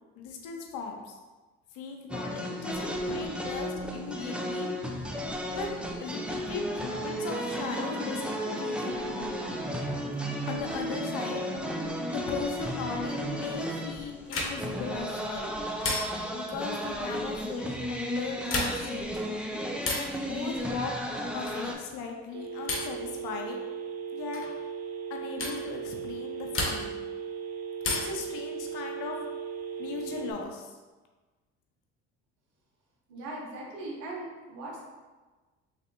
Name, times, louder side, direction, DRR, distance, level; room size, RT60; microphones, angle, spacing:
voice 1, 0.2-1.2 1.7-4.7 5.5-5.7 6.0-9.1 10.4-11.5 12.0-15.5 16.3-19.2 20.2-20.9 21.3-23.6 24.1-24.4 25.1-27.0 27.9-29.2 29.8-30.8, left 5 dB, 70° left, 2 dB, 0.7 m, -38 dB
sound 1, 2.1-21.7, equal, 5° right, 0.5 m, -34 dB
sound 2, 14.3-14.8 15.8-16.4 18.4-19.0 19.8-20.2 21.4-21.8 22.7-23.0 24.3-24.5 25.4-25.6 26.5-27.1 27.8-28.3 29.8-30.4, left 2 dB, 40° left, 1.0 m, -33 dB
Telephone, 22.3-30.3, right 7 dB, 60° right, 0.6 m, -37 dB
voice 2, 33.1-34.8, right 2 dB, 80° right, -2 dB, 1.0 m, -39 dB
3.3 x 3.3 x 2.9 m, 1.3 s
hypercardioid pair, 60°, 32 cm